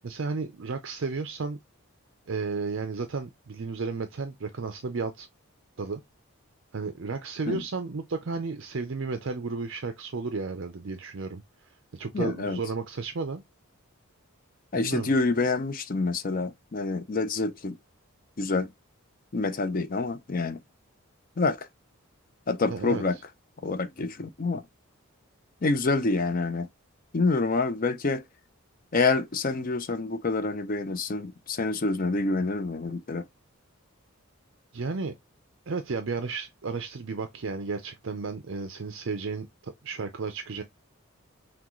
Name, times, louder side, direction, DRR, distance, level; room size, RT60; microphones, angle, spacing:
voice 1, 0.0-1.6 2.3-5.3 5.8-6.0 6.7-11.4 11.9-13.4 14.7-15.1 22.7-23.0 34.7-35.1 35.7-40.6, right 4 dB, 55° right, 0.5 m, -33 dB
voice 2, 12.1-12.6 14.7-17.8 18.4-18.7 19.3-20.6 21.4-21.7 22.5-23.2 23.6-24.6 25.6-26.7 27.1-28.2 28.9-33.2, left 3 dB, 40° left, 0.5 m, -27 dB
6.0 x 2.3 x 3.0 m
head